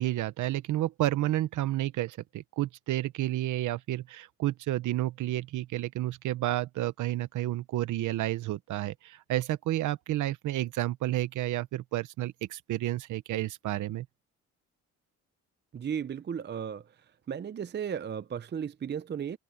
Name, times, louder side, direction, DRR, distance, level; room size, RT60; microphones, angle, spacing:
voice 1, 0.0-14.1, right 15 dB, 80° right, 1.1 m, -31 dB
voice 2, 15.7-16.8 17.3-19.4, right 8 dB, 35° right, 0.7 m, -35 dB
cardioid pair, 90°, 30 cm